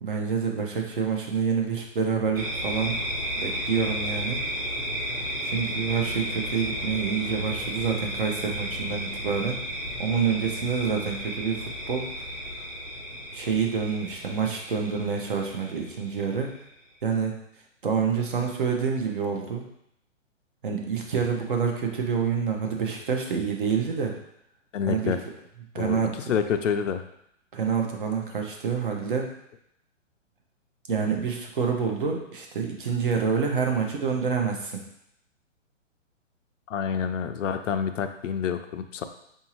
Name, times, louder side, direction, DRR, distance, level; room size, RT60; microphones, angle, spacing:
voice 1, 0.0-3.0 3.3-4.4 5.4-9.6 10.0-12.3 12.6-12.7 13.3-16.5 17.0-17.3 17.8-19.6 20.6-24.1 24.9-25.1 25.7-26.3 27.5-29.3 30.9-34.8, right 6 dB, 40° right, 2 dB, 0.6 m, -27 dB
sound 1, 2.4-16.7, equal, 80° right, 1.3 m, -33 dB
voice 2, 24.7-25.2 25.8-26.0 26.3-27.0 36.7-39.0, left 7 dB, 70° left, 8 dB, 0.5 m, -27 dB
4.7 x 2.7 x 2.9 m, 0.75 s
hypercardioid pair, 165°, 39 cm